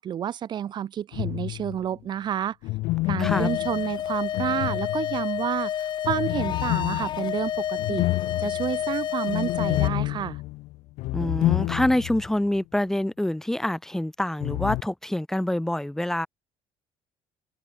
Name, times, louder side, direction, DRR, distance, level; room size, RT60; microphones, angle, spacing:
voice 1, 0.0-2.6 3.1-8.1 8.4-10.4, right 10 dB, 40° right, 4.2 m, -30 dB
sound 1, 1.1-1.9 2.6-5.4 6.0-12.3 12.5-12.6 14.4-14.8, left 20 dB, 85° left, 4.1 m, -29 dB
sound 2, 3.2-9.9, left 10 dB, 45° left, 2.5 m, -30 dB
voice 2, 3.2-3.5 11.1-16.3, left 1 dB, 5° left, 5.6 m, -26 dB
cardioid pair, 155°, 11 cm